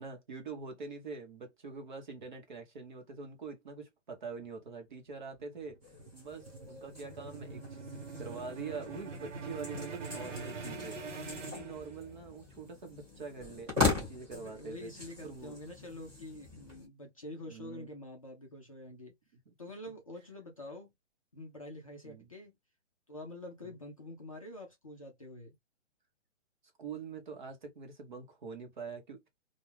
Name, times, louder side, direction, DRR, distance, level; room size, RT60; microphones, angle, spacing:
voice 1, 0.0-5.8 6.1-11.2 11.5-14.9 15.2-15.6 17.5-17.9 19.5-19.6 22.0-22.3 23.6-23.7 26.8-29.3, right 4 dB, 40° right, 0.8 m, -44 dB
sound 1, 5.1-12.3, right 4 dB, 85° right, 1.0 m, -44 dB
sound 2, 5.8-16.9, left 4 dB, 10° right, 0.8 m, -39 dB
voice 2, 14.3-19.1 19.6-20.9 21.3-22.5 23.1-25.6, left 1 dB, 30° left, 0.4 m, -47 dB
2.3 x 2.2 x 3.1 m
hypercardioid pair, 170°, 36 cm